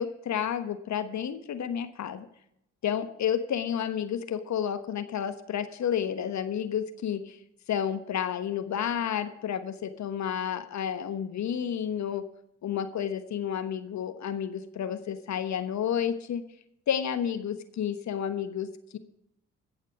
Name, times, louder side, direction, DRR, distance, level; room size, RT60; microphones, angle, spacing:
voice 1, 0.0-2.3 2.8-7.4 7.7-12.2 12.6-16.4 16.9-19.0, left 8 dB, 50° left, 10 dB, 1.2 m, -31 dB
16.0 x 7.1 x 5.0 m, 0.77 s
figure-of-eight pair, 45°, 37 cm